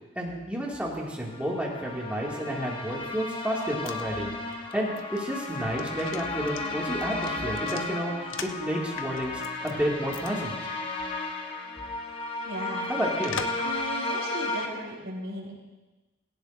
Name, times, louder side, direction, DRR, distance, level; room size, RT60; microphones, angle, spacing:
voice 1, 0.2-10.6 12.9-13.4, equal, 5° right, -4 dB, 2.3 m, -31 dB
sound 1, 1.3-14.7, left 2 dB, 25° left, 1.3 m, -34 dB
sound 2, 3.4-8.7 9.0-9.7 10.1-10.3 10.6-10.7 13.2-13.7 14.1-14.2, left 6 dB, 80° left, 0.8 m, -40 dB
voice 2, 12.4-13.0 13.6-15.5, equal, 65° right, -5 dB, 5.4 m, -36 dB
19.0 x 17.0 x 2.7 m, 1.1 s
head